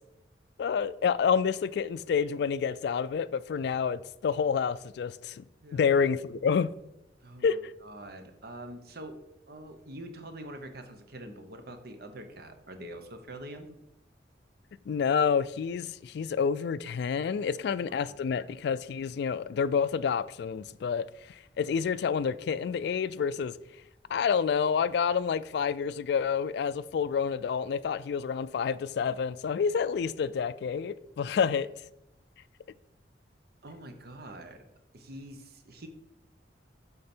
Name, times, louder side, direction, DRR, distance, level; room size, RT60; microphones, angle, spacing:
voice 1, 0.6-5.4 5.7-6.7 7.4-7.7 14.9-23.5 24.1-31.7, left 6 dB, 65° left, 0.3 m, -28 dB
voice 2, 7.2-7.6 7.8-13.8 17.7-18.2 33.6-34.6 34.9-35.9, right 1 dB, 60° right, 1.0 m, -45 dB
8.6 x 4.1 x 4.4 m
head